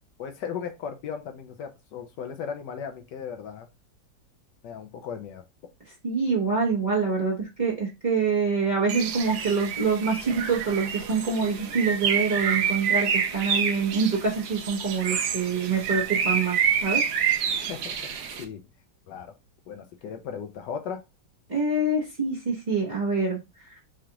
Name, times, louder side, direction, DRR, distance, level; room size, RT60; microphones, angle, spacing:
voice 1, 0.2-3.7 4.6-5.4 17.6-18.6 19.1-19.3 19.7-21.0, left 7 dB, 75° left, 1.2 m, -37 dB
voice 2, 6.0-17.0 21.5-23.4 23.7-23.8, right 4 dB, 35° right, 0.8 m, -26 dB
Bird, 8.9-18.4, right 7 dB, 80° right, 1.3 m, -28 dB
4.8 x 2.3 x 2.8 m
omnidirectional pair, 2.0 m